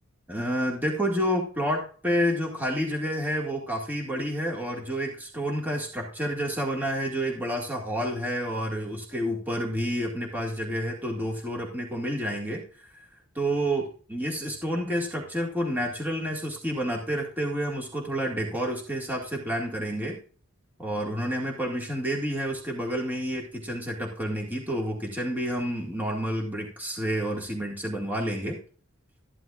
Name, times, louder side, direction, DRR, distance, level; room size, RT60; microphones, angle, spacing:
voice 1, 0.3-13.0 13.4-20.2 20.8-28.6, equal, 10° right, -1 dB, 2.0 m, -29 dB
13.5 x 11.5 x 2.5 m, 0.40 s
head